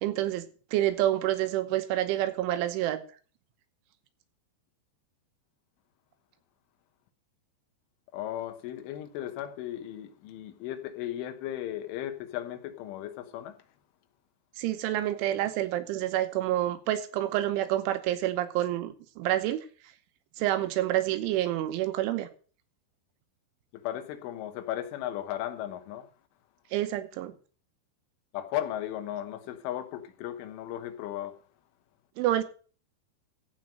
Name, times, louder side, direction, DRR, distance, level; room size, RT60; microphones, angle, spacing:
voice 1, 0.0-0.4 0.7-3.0 14.6-19.6 20.4-22.3 26.7-27.3 32.2-32.4, right 13 dB, 85° right, 3.4 m, -28 dB
voice 2, 8.1-13.6 23.7-26.1 28.3-31.3, left 12 dB, 85° left, 3.6 m, -36 dB
15.0 x 5.3 x 7.6 m
omnidirectional pair, 5.6 m